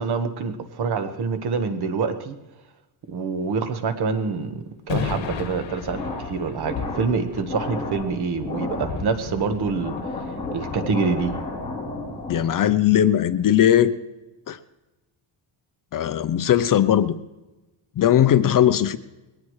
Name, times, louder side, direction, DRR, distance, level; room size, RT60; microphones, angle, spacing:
voice 1, 0.0-2.4 3.1-10.0 10.5-11.3, right 5 dB, 55° right, 8 dB, 1.4 m, -26 dB
sound 1, 4.9-11.7, left 6 dB, 70° left, 2.0 m, -35 dB
sound 2, 5.9-12.7, left 2 dB, 15° left, 3.2 m, -33 dB
voice 2, 12.3-13.9 14.5-14.6 15.9-17.1 18.0-19.0, left 10 dB, 45° left, 13 dB, 0.6 m, -18 dB
21.5 x 18.5 x 3.2 m, 1.1 s
cardioid pair, 140°, 47 cm